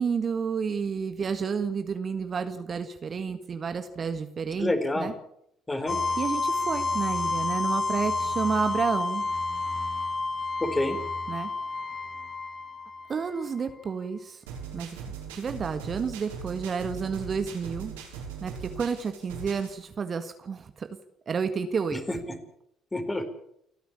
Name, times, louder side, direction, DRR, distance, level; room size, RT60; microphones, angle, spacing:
voice 1, 0.0-5.1 6.2-9.2 11.3-11.5 13.1-14.4 14.7-15.0 15.3-17.9 18.4-20.9 21.3-22.0, right 6 dB, 40° right, 8 dB, 1.7 m, -30 dB
voice 2, 4.6-5.1 5.7-6.0 10.6-11.0 22.9-23.3, left 1 dB, 15° left, 7 dB, 4.4 m, -27 dB
sound 1, 5.9-13.6, left 3 dB, 40° left, 2.0 m, -30 dB
sound 2, 14.5-19.8, right 6 dB, 75° right, 4.7 m, -40 dB
29.5 x 10.0 x 8.7 m, 0.75 s
figure-of-eight pair, 50°, 0 cm